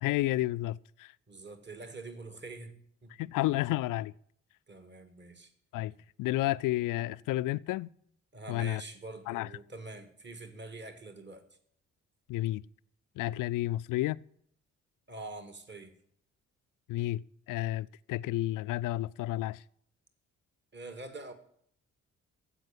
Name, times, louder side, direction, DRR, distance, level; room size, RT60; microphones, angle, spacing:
voice 1, 0.0-1.1 3.2-4.1 5.7-5.9 6.2-7.9 8.5-8.8 9.3-9.5 12.3-12.6 13.2-14.2 16.9-17.2 17.5-19.6, left 16 dB, 60° left, 0.5 m, -31 dB
voice 2, 1.3-3.2 4.7-5.5 8.3-11.4 15.1-15.9 20.7-21.3, right 2 dB, 30° right, 2.0 m, -45 dB
15.5 x 5.3 x 9.2 m
hypercardioid pair, 40°, 37 cm